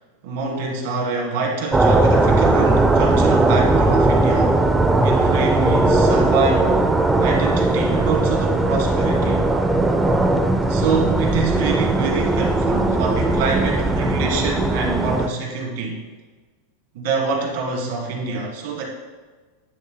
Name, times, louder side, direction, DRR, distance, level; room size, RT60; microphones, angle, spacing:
voice 1, 0.2-4.6 5.0-6.9 7.2-9.5 10.7-16.0 16.9-18.8, right 4 dB, 60° right, 0 dB, 1.7 m, -25 dB
sound 1, 1.7-15.3, right 2 dB, 5° right, 0.3 m, -18 dB
9.8 x 7.3 x 2.2 m, 1.3 s
supercardioid pair, 170°, 0 cm